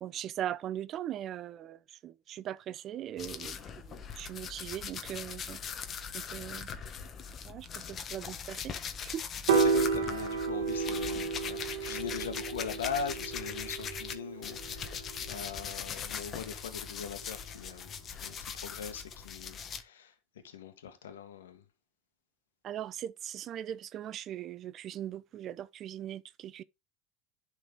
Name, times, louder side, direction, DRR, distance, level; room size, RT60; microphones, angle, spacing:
voice 1, 0.0-3.6 3.8-5.6 6.1-6.7 7.4-8.8 9.0-9.2 22.6-26.6, right 11 dB, 45° right, 0.6 m, -40 dB
sound 1, 3.2-14.1 14.4-19.8, left 7 dB, 40° left, 1.3 m, -41 dB
voice 2, 9.5-18.0 18.2-20.1 20.4-21.6, left 6 dB, 90° left, 1.6 m, -41 dB
Piano, 9.5-15.8, right 5 dB, 80° right, 1.4 m, -32 dB
11.0 x 4.3 x 3.6 m
hypercardioid pair, 90°, 0 cm